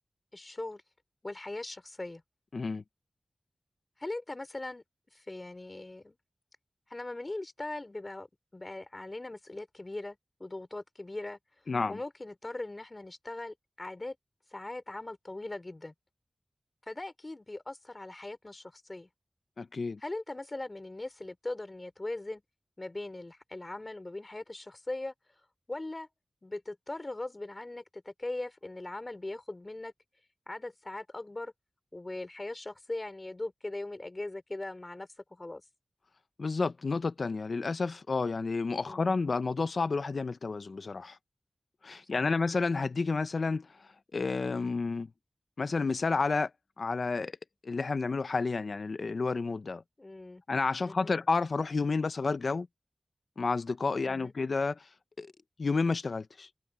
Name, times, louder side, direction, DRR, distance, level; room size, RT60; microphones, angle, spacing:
voice 1, 0.3-0.8 1.2-2.2 4.0-4.8 5.1-6.2 6.9-8.3 8.5-11.4 11.9-14.2 14.5-15.9 16.9-19.1 20.0-22.4 22.8-25.1 25.7-26.1 26.4-29.9 30.5-31.5 31.9-35.6 38.9-39.2 42.1-42.4 50.0-50.4 50.8-51.2 54.0-54.3, left 2 dB, 30° left, 3.9 m, -40 dB
voice 2, 2.5-2.8 11.7-12.0 19.6-20.0 36.4-41.2 41.8-43.7 44.1-45.1 45.6-46.5 46.8-47.3 47.6-49.8 50.5-52.7 53.4-54.8 55.2-55.3 55.6-56.5, left 4 dB, 70° left, 0.7 m, -30 dB
wide cardioid pair, 100°, 0 cm